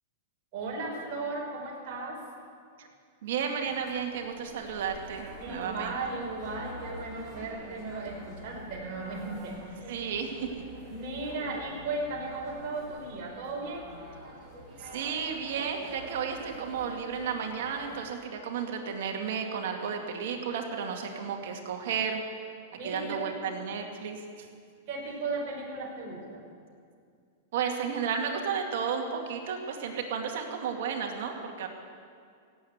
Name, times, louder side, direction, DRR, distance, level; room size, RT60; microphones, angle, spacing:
voice 1, 0.5-2.2 5.4-9.9 10.9-13.9 21.1-21.3 22.8-23.4 24.9-26.4, right 3 dB, 45° right, -3 dB, 5.1 m, -36 dB
voice 2, 3.2-6.0 9.9-10.4 14.8-22.2 22.8-24.5 27.5-31.7, right 6 dB, 65° right, 2 dB, 2.3 m, -33 dB
sound 1, 3.6-18.1, right 1 dB, 20° right, 4.4 m, -47 dB
17.0 x 8.5 x 9.7 m, 2.2 s
hypercardioid pair, 135°, 0 cm